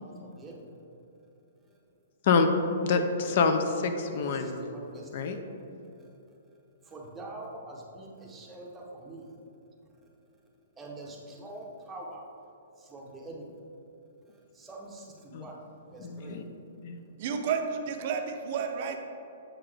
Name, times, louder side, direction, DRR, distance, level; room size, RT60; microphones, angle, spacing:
voice 1, 0.2-0.7 4.1-5.4 6.8-9.3 10.8-12.2 12.8-13.5 14.5-15.5 15.9-16.4, right 2 dB, 10° right, -2 dB, 0.7 m, -44 dB
voice 2, 2.8-4.6 5.1-5.4 15.3-15.5 16.0-16.4 16.8-17.0, left 5 dB, 45° left, 7 dB, 0.4 m, -26 dB
voice 3, 17.2-19.1, right 6 dB, 40° right, 5 dB, 0.5 m, -31 dB
7.7 x 3.8 x 3.3 m, 2.9 s
hypercardioid pair, 165°, 0 cm